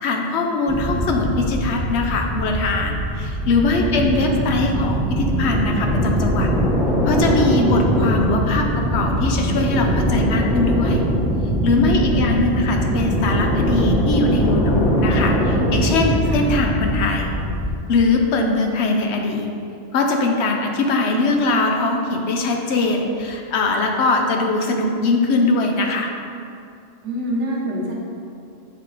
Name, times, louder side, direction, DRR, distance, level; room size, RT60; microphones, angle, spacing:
voice 1, 0.0-6.5 7.0-11.0 11.6-17.3 17.9-19.5 19.9-26.1, left 3 dB, 65° left, 2 dB, 0.9 m, -21 dB
sound 1, 0.7-17.8, equal, ahead, 0.5 m, -21 dB
voice 2, 3.8-4.3 7.4-7.7 11.8-12.2 16.3-16.4 27.0-27.9, right 2 dB, 65° right, -4 dB, 1.3 m, -26 dB
6.4 x 3.6 x 4.0 m, 2.5 s
omnidirectional pair, 1.3 m